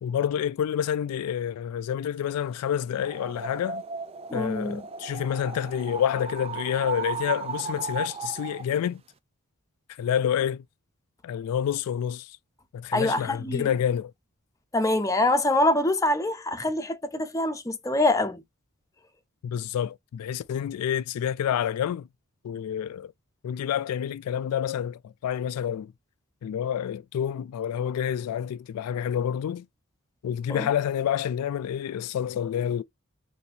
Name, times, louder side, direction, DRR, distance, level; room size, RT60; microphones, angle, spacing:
voice 1, 0.0-3.8 4.3-9.0 9.9-10.6 11.2-12.4 12.7-14.1 19.4-22.1 22.4-23.1 23.4-25.9 26.4-29.7 30.2-32.8, left 9 dB, 80° left, 0.3 m, -28 dB
sound 1, 2.9-8.7, right 5 dB, 25° right, 0.3 m, -35 dB
voice 2, 4.3-4.8 12.9-13.7 14.7-18.4 30.5-30.7, left 1 dB, 15° left, 0.6 m, -25 dB
4.2 x 2.7 x 2.7 m
head